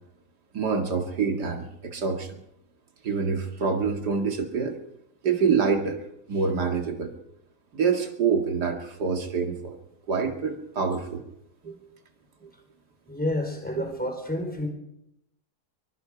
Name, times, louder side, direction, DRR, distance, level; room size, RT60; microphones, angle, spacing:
voice 1, 0.5-2.3 3.0-4.8 5.2-6.0 6.3-7.2 7.7-9.8 10.1-11.2 11.6-11.8 12.4-12.5 13.8-13.9, right 5 dB, 75° right, 4 dB, 2.7 m, -26 dB
voice 2, 13.1-14.7, left 1 dB, 5° left, 4 dB, 4.4 m, -29 dB
24.0 x 22.0 x 5.1 m, 0.82 s
omnidirectional pair, 1.8 m